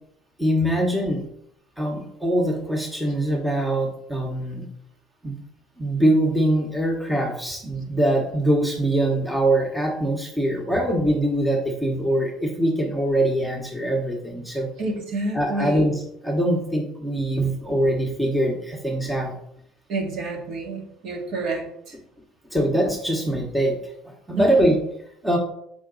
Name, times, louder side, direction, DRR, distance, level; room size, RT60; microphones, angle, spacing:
voice 1, 0.4-1.2 1.8-4.7 5.2-5.4 5.8-14.7 15.3-15.9 16.2-19.3 22.5-23.7 24.3-24.7 25.2-25.4, right 1 dB, ahead, 0 dB, 1.1 m, -23 dB
voice 2, 14.8-15.9 19.9-22.0 24.3-24.7, right 2 dB, 60° right, 0 dB, 1.8 m, -29 dB
6.6 x 4.9 x 3.9 m, 0.73 s
cardioid pair, 135°, 0 cm